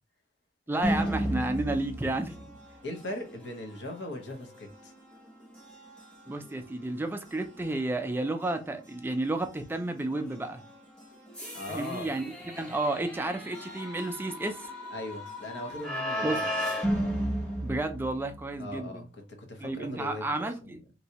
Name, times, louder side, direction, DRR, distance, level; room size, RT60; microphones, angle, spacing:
voice 1, 0.7-2.5 6.3-10.6 11.7-14.7 16.2-16.5 17.6-19.0 19.6-20.8, right 2 dB, 10° right, 0.3 m, -32 dB
sound 1, 0.8-18.5, equal, 5° left, 0.8 m, -36 dB
voice 2, 2.8-4.9 11.5-12.2 14.9-16.7 18.6-19.1 19.4-20.3 20.6-20.7, left 1 dB, 65° left, 0.8 m, -39 dB
3.1 x 2.7 x 2.8 m
head